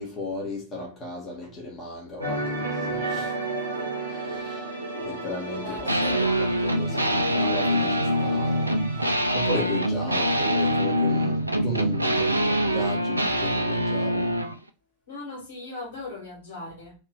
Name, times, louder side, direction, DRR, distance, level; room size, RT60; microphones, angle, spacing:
voice 1, 0.0-3.4 3.8-14.4, left 2 dB, 25° left, 1.3 m, -36 dB
sound 1, 2.2-10.9 11.1-11.4, right 2 dB, 90° left, 1.2 m, -34 dB
voice 2, 5.6-6.5 15.1-16.9, left 2 dB, 65° left, 2.0 m, -39 dB
sound 2, 5.9-14.6, equal, 85° right, 0.4 m, -24 dB
3.2 x 2.9 x 4.3 m
figure-of-eight pair, 90°, 0 cm